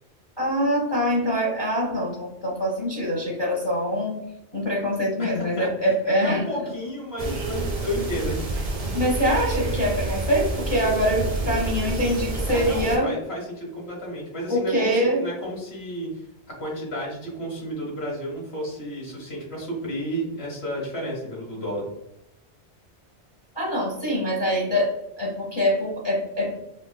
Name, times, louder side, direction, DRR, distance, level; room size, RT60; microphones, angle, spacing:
voice 1, 0.4-4.1 4.5-6.4 8.9-13.1 14.5-15.2 23.6-26.6, equal, 30° left, -3 dB, 0.6 m, -24 dB
voice 2, 5.2-8.4 8.8-8.9 12.5-21.9, equal, 65° left, -3 dB, 1.6 m, -32 dB
sound 1, 7.2-13.0, right 2 dB, 45° right, 0.5 m, -28 dB
4.4 x 2.2 x 2.2 m, 0.85 s
omnidirectional pair, 1.2 m